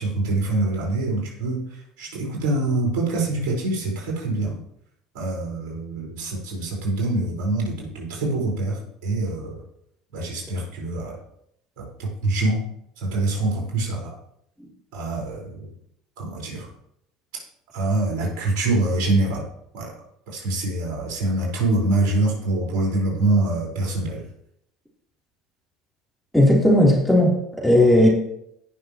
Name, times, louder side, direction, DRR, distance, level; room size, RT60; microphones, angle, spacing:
voice 1, 0.0-1.6 2.0-4.6 5.1-9.6 10.1-11.2 11.8-12.6 13.0-14.1 14.9-15.7 16.2-16.7 17.7-19.4 19.7-19.9 20.3-24.2, right 2 dB, 65° right, -2 dB, 4.7 m, -25 dB
voice 2, 26.3-28.1, left 1 dB, ahead, -4 dB, 3.5 m, -16 dB
17.5 x 6.5 x 3.1 m, 0.74 s
hypercardioid pair, 75°, 0 cm